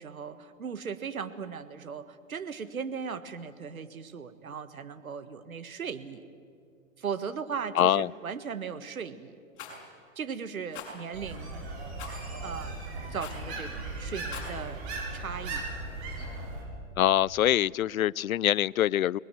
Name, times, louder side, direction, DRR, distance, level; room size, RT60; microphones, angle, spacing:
voice 1, 0.0-6.2 7.0-9.4 10.1-11.7 12.4-12.8 13.1-14.8 15.1-15.6, right 6 dB, 85° right, 11 dB, 1.7 m, -37 dB
voice 2, 7.8-8.1 17.0-19.2, left 12 dB, 85° left, 25 dB, 0.5 m, -24 dB
Rattle, 9.6-9.8 10.7-10.9 12.0-12.2 13.2-13.5 14.2-14.5, left 6 dB, 30° left, 6.5 m, -41 dB
sound 1, 11.1-16.6, right 2 dB, 55° right, 7.4 m, -37 dB
27.5 x 20.5 x 7.7 m, 2.3 s
hypercardioid pair, 120°, 41 cm